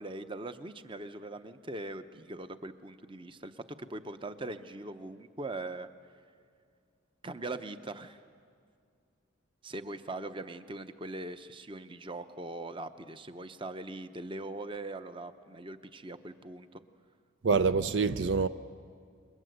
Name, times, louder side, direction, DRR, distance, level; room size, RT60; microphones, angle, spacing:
voice 1, 0.0-5.9 7.2-8.2 9.6-16.8, right 2 dB, 25° right, 0.8 m, -41 dB
voice 2, 17.4-18.5, right 4 dB, 65° right, 0.6 m, -26 dB
28.0 x 22.0 x 8.1 m
head